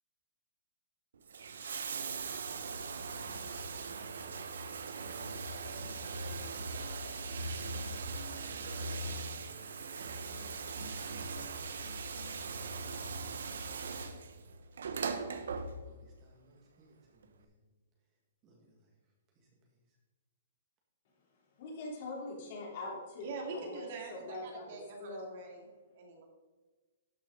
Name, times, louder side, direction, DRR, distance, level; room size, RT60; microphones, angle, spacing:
Bathtub (filling or washing), 1.1-16.1 17.2-17.3, right 4 dB, 90° right, 1.0 m, -40 dB
voice 1, 8.1-17.7 18.1-18.2 18.4-20.0, right 2 dB, 25° right, -1 dB, 1.8 m, -64 dB
voice 2, 21.6-25.3, left 2 dB, 45° left, -2 dB, 3.4 m, -43 dB
voice 3, 23.2-25.6 25.9-26.2, right 3 dB, 45° right, 1 dB, 2.3 m, -44 dB
12.5 x 6.6 x 3.9 m, 1.3 s
hypercardioid pair, 165°, 0 cm